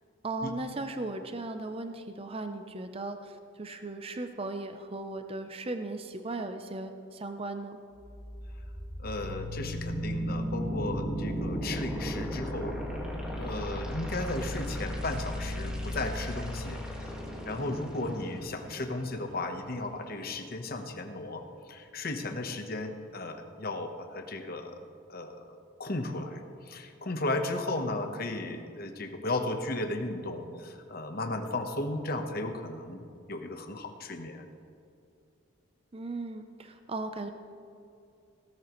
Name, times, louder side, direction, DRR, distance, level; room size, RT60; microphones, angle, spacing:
voice 1, 0.2-7.8 35.9-37.3, right 2 dB, 25° right, 7 dB, 0.5 m, -37 dB
sound 1, 8.0-20.0, equal, 5° right, 1.6 m, -36 dB
voice 2, 9.0-12.8 13.4-16.8 17.5-24.8 25.1-25.4 25.8-33.0 33.3-34.4, left 2 dB, 45° left, 6 dB, 1.0 m, -35 dB
17.0 x 13.5 x 3.1 m, 2.5 s
head